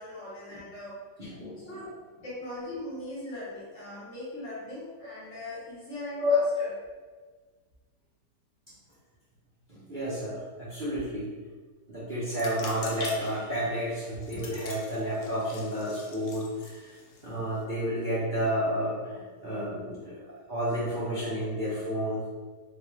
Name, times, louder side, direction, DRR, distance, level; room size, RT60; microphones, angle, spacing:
voice 1, 0.0-1.3 1.6-1.9 2.2-6.7, left 1 dB, 50° left, -8 dB, 1.3 m, -40 dB
voice 2, 1.2-1.6 6.2-6.5 9.7-11.3 11.9-16.9 17.2-22.2, equal, 45° right, -11 dB, 0.7 m, -31 dB
sound 1, 12.3-17.6, left 4 dB, 70° left, 1.0 m, -44 dB
3.8 x 2.4 x 3.0 m, 1.4 s
omnidirectional pair, 1.8 m